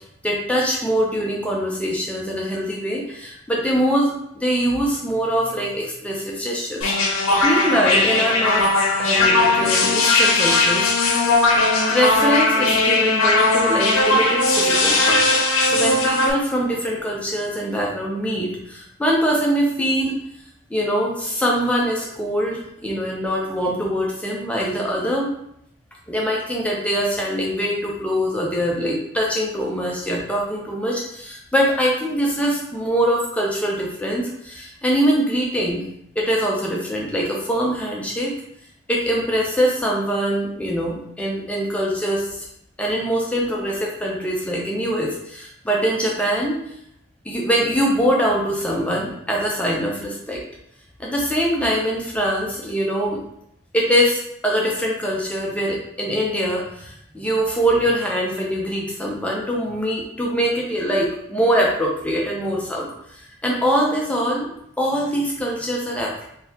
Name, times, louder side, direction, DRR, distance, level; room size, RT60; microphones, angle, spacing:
voice 1, 0.2-6.8 7.4-10.9 11.9-15.4 15.7-20.1 20.7-25.3 26.1-35.8 36.2-38.3 38.9-42.5 42.8-46.6 47.2-50.4 51.0-53.2 53.7-64.5 64.8-66.1, equal, 5° left, -3 dB, 0.4 m, -23 dB
sound 1, 6.8-16.3, left 2 dB, 80° left, 0.6 m, -18 dB
3.8 x 2.7 x 2.8 m, 0.75 s
head